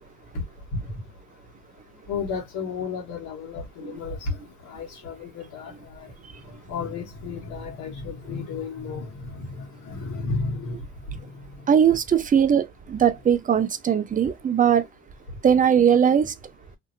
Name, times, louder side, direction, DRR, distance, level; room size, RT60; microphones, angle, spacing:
voice 1, 2.1-4.3 4.6-6.1 6.7-10.8 11.2-11.3, left 4 dB, 90° left, 1.3 m, -33 dB
voice 2, 11.7-14.9 15.4-16.3, right 8 dB, 25° right, 0.4 m, -20 dB
2.6 x 2.5 x 2.6 m
cardioid pair, 90°, 30 cm